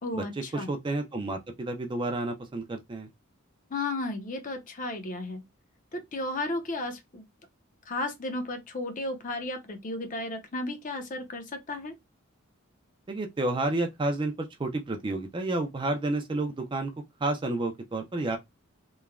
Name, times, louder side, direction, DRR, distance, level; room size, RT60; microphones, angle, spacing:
voice 1, 0.0-0.7 3.7-5.4 5.9-7.3 7.9-11.9, left 2 dB, 40° left, 0.6 m, -34 dB
voice 2, 0.5-3.1 13.1-16.9 17.2-18.4, right 2 dB, 20° right, 0.4 m, -30 dB
3.0 x 2.1 x 2.3 m
head